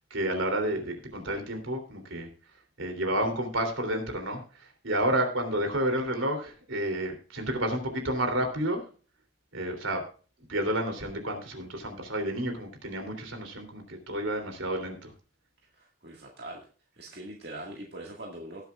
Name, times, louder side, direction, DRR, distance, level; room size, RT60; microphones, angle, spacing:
voice 1, 0.1-2.3 2.8-4.4 4.8-8.8 9.5-10.0 10.5-15.1, right 1 dB, 80° right, 5 dB, 3.1 m, -30 dB
voice 2, 15.7-16.7 17.0-18.6, right 1 dB, 55° right, -1 dB, 1.9 m, -42 dB
19.0 x 7.9 x 2.4 m, 0.38 s
head